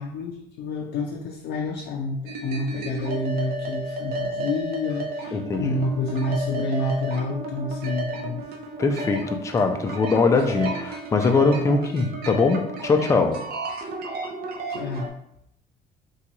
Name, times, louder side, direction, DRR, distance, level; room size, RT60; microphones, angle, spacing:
voice 1, 0.0-8.4 14.7-15.1, left 2 dB, 75° left, 0 dB, 0.4 m, -28 dB
sound 1, 2.3-15.1, right 2 dB, 65° right, 0.6 m, -33 dB
voice 2, 5.3-5.8 8.8-13.4, left 4 dB, 20° left, 4 dB, 0.3 m, -22 dB
3.7 x 2.3 x 2.9 m, 0.76 s
cardioid pair, 110°, 17 cm